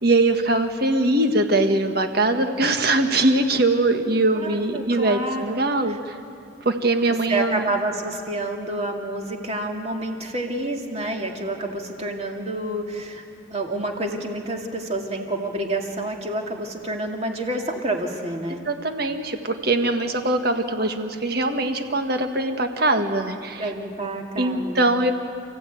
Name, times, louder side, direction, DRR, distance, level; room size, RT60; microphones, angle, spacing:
voice 1, 0.0-6.2 6.6-7.7 18.6-23.7 24.4-25.1, right 2 dB, 50° right, 6 dB, 1.7 m, -22 dB
voice 2, 4.4-5.6 5.9-6.0 7.3-13.2 13.5-18.6 23.6-24.9, right 2 dB, 35° right, 2 dB, 2.3 m, -28 dB
29.0 x 15.5 x 9.3 m, 2.4 s
head